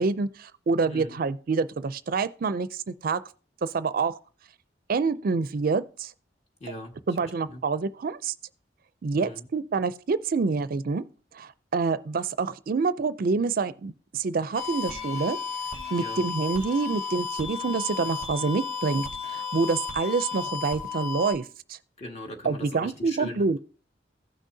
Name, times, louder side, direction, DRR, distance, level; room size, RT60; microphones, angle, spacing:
voice 1, 0.0-3.2 3.6-4.2 4.9-6.1 7.1-8.3 9.0-11.1 11.3-21.8 22.4-23.6, right 4 dB, 55° right, 0.4 m, -27 dB
voice 2, 0.9-1.2 6.6-7.6 9.2-9.5 16.0-16.2 22.0-23.4, left 1 dB, 35° left, 1.9 m, -40 dB
sound 1, 14.5-21.3, left 6 dB, 55° left, 3.3 m, -33 dB
16.0 x 6.3 x 2.7 m
head